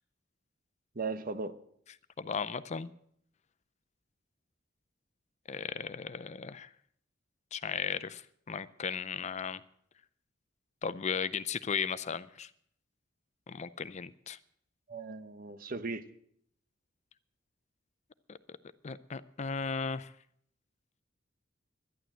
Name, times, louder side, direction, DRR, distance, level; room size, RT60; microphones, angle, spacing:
voice 1, 0.9-1.6 14.9-16.0, right 3 dB, 45° right, 11 dB, 0.9 m, -37 dB
voice 2, 2.2-2.9 5.5-6.7 7.5-9.6 10.8-12.5 13.5-14.4 18.3-18.6 18.8-20.1, left 6 dB, 35° left, 15 dB, 0.5 m, -36 dB
11.5 x 11.0 x 7.6 m, 0.67 s
head